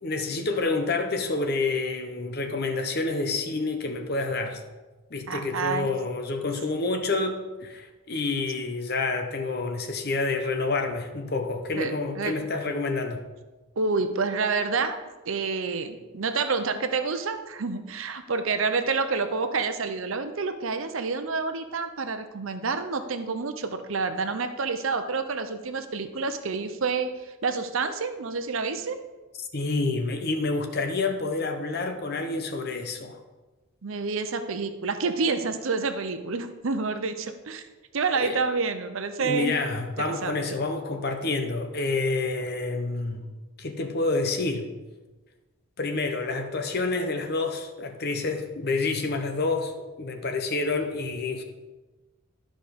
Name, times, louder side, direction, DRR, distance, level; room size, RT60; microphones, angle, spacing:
voice 1, 0.0-4.6 5.1-13.3 29.5-33.2 38.2-38.4 39.2-43.3 43.6-44.7 45.8-51.4, left 3 dB, 45° left, 5 dB, 0.9 m, -28 dB
voice 2, 5.3-5.9 11.8-12.4 13.8-15.0 15.3-29.0 33.8-37.6 37.9-39.5 40.0-40.4, right 4 dB, 70° right, 8 dB, 0.7 m, -28 dB
11.5 x 5.1 x 5.2 m, 1.2 s
head